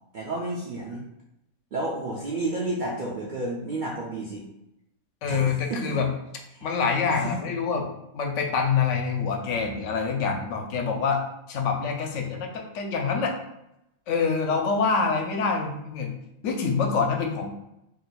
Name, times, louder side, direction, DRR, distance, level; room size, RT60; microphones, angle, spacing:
voice 1, 0.1-1.0 1.7-4.4 5.3-6.0 6.5-6.7 7.1-7.4, right 2 dB, 60° right, -4 dB, 0.5 m, -31 dB
voice 2, 5.2-6.1 6.6-7.9 8.1-11.2 11.5-13.3 14.1-16.1 16.4-17.5, left 5 dB, 75° left, 2 dB, 0.9 m, -26 dB
2.7 x 2.2 x 4.0 m, 0.84 s
omnidirectional pair, 1.3 m